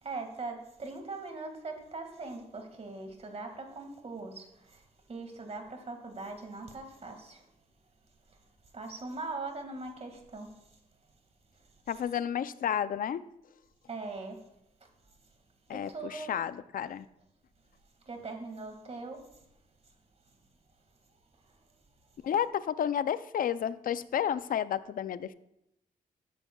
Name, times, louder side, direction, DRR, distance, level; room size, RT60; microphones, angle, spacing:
voice 1, 0.0-7.5 8.7-10.6 13.9-14.5 15.7-16.3 18.1-19.3, right 3 dB, 45° right, 5 dB, 2.0 m, -41 dB
voice 2, 11.9-13.2 15.7-17.1 22.2-25.3, left 9 dB, 65° left, 14 dB, 0.5 m, -31 dB
13.5 x 10.5 x 2.3 m, 0.84 s
cardioid pair, 85°, 15 cm